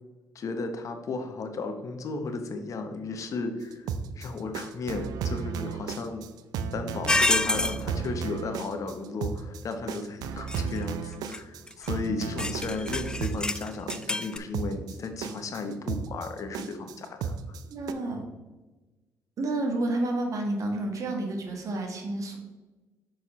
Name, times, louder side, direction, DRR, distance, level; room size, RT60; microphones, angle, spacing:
voice 1, 0.3-6.3 6.7-17.6, left 3 dB, 55° left, 6 dB, 0.8 m, -34 dB
sound 1, 3.7-17.9, right 6 dB, 80° right, 0.5 m, -34 dB
sound 2, 7.1-7.8 10.5-10.8 11.3-11.4 11.7-11.9 12.4-14.4, left 2 dB, 10° left, 0.3 m, -27 dB
voice 2, 17.7-18.2 19.4-22.4, right 2 dB, 55° right, 2 dB, 1.5 m, -30 dB
6.3 x 5.4 x 3.0 m, 1.2 s
supercardioid pair, 70°, 7 cm